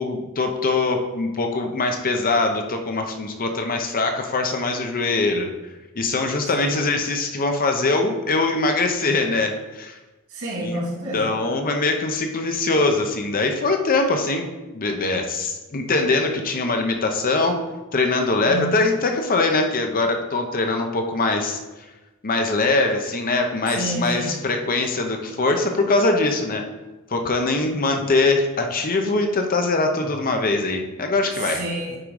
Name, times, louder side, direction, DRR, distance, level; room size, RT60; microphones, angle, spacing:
voice 1, 0.0-5.5 6.0-10.0 10.6-10.8 11.1-14.5 14.7-17.6 17.9-21.6 22.2-26.6 27.1-31.6, left 3 dB, 40° left, 4 dB, 0.7 m, -22 dB
voice 2, 10.3-11.2 18.4-18.7 23.7-24.3 31.4-32.0, right 1 dB, 70° right, -3 dB, 2.6 m, -29 dB
8.7 x 3.7 x 4.8 m, 1.1 s
head